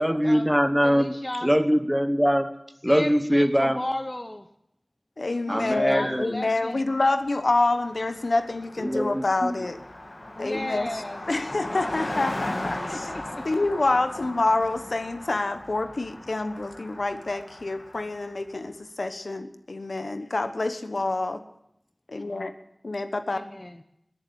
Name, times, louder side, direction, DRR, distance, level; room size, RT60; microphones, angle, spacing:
voice 1, 0.0-2.5 2.8-3.8 5.5-6.3 8.8-9.6, equal, 5° right, 10 dB, 1.2 m, -23 dB
voice 2, 0.8-1.5 2.9-4.5 5.3-6.8 10.3-11.2 11.7-13.4 23.3-23.8, left 1 dB, 30° left, 6 dB, 0.9 m, -35 dB
voice 3, 5.2-9.8 10.4-13.1 13.4-21.4 22.1-22.5 22.8-23.4, left 2 dB, 85° left, 8 dB, 1.1 m, -27 dB
Car passing by, 7.1-7.2 7.4-18.4, left 1 dB, 60° left, 2.4 m, -37 dB
21.5 x 7.3 x 8.8 m, 0.80 s
wide cardioid pair, 50°, 0 cm